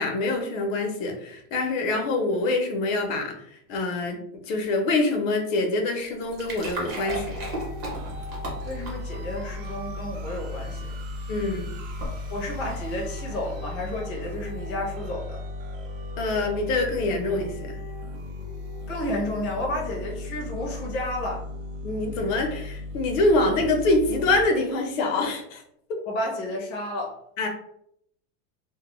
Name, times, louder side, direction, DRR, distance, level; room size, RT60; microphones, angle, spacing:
voice 1, 0.0-7.4 11.3-11.7 16.2-17.8 21.8-25.6 25.9-26.0 27.4-27.5, left 2 dB, 70° left, 2 dB, 0.7 m, -25 dB
sound 1, 6.0-13.6, right 1 dB, 25° right, 0.7 m, -38 dB
sound 2, 7.1-24.5, left 1 dB, 70° right, 0.7 m, -36 dB
voice 2, 8.6-10.9 12.0-15.4 18.9-21.5 26.1-27.2, left 1 dB, 30° left, -2 dB, 0.5 m, -31 dB
2.2 x 2.1 x 2.9 m, 0.73 s
supercardioid pair, 165°, 40 cm